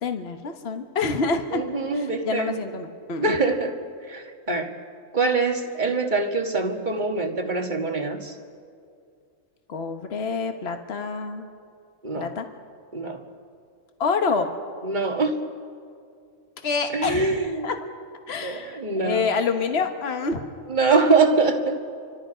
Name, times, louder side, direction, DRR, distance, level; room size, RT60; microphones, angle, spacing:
voice 1, 0.0-1.6 1.9-3.4 9.7-11.5 12.2-12.5 14.0-14.5 16.6-17.8 18.3-20.4, left 4 dB, 50° left, 5 dB, 1.5 m, -27 dB
voice 2, 1.5-2.6 3.2-3.8 4.1-4.7 5.1-8.3 12.0-12.3 12.9-13.2 14.8-15.5 16.9-17.7 18.4-19.3 20.7-21.8, right 3 dB, 35° right, 3 dB, 1.9 m, -24 dB
29.5 x 25.5 x 5.1 m, 2.4 s
omnidirectional pair, 1.4 m